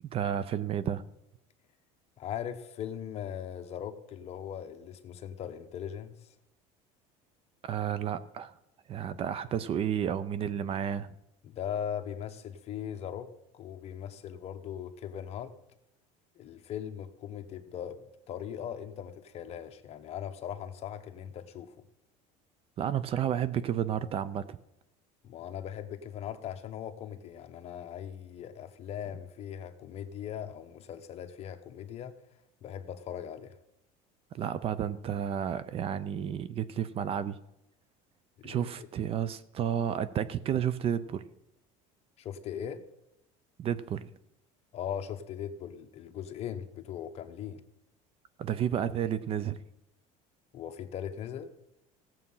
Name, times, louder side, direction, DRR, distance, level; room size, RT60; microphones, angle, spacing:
voice 1, 0.0-1.0 7.6-8.5 8.9-11.1 22.8-24.6 34.3-37.4 38.4-41.2 43.6-44.1 48.4-49.6, right 9 dB, 40° right, 0.6 m, -31 dB
voice 2, 2.2-6.3 11.4-15.6 16.3-21.8 25.2-32.2 32.6-33.6 38.4-38.9 42.2-42.8 44.7-47.6 50.5-51.5, left 9 dB, 40° left, 1.1 m, -39 dB
16.5 x 7.6 x 5.6 m
cardioid pair, 140°, 16 cm